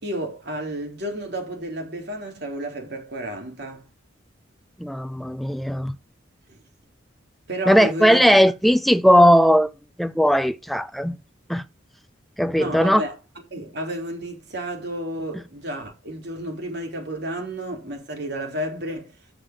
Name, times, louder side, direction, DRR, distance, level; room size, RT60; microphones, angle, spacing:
voice 1, 0.0-3.8 6.5-6.6 7.5-8.2 12.6-13.1 13.5-19.2, right 1 dB, 60° right, 3.7 m, -31 dB
voice 2, 4.8-6.0 7.7-9.7 10.0-11.2 11.5-11.6 12.4-13.0, equal, ahead, 0.5 m, -18 dB
13.5 x 6.5 x 3.8 m
head